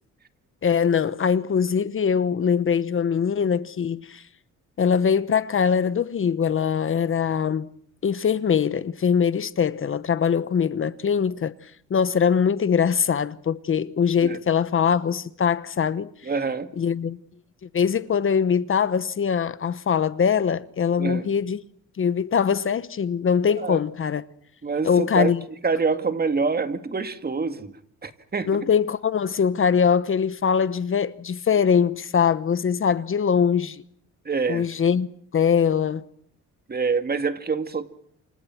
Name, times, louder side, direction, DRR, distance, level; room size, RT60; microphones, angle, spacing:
voice 1, 0.6-4.2 4.8-7.7 8.0-11.5 11.9-16.1 16.8-17.2 17.7-21.6 22.0-24.2 24.8-25.4 28.5-33.8 34.5-36.0, left 7 dB, 45° left, 1.1 m, -22 dB
voice 2, 16.2-16.7 21.0-21.3 23.6-23.8 24.6-25.3 25.6-27.7 28.0-28.7 34.2-34.6 36.7-37.9, right 4 dB, 30° right, 2.2 m, -26 dB
28.5 x 25.0 x 6.1 m
cardioid pair, 90°, 30 cm